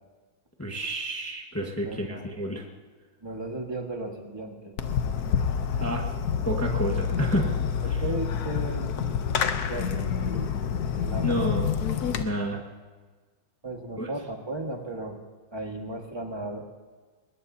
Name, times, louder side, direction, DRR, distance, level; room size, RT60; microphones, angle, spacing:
voice 1, 0.6-2.6 5.8-6.1 6.4-7.5 7.8-8.0 11.2-11.7 12.2-12.6 14.0-14.1, equal, 10° left, 1 dB, 1.2 m, -29 dB
voice 2, 1.8-2.4 3.2-4.7 7.8-8.9 9.6-11.5 13.6-15.2 15.5-16.7, right 2 dB, 15° right, 2 dB, 1.5 m, -36 dB
Fireworks, 4.8-12.2, left 7 dB, 60° left, 1.2 m, -28 dB
21.5 x 20.0 x 2.8 m, 1.4 s
omnidirectional pair, 2.2 m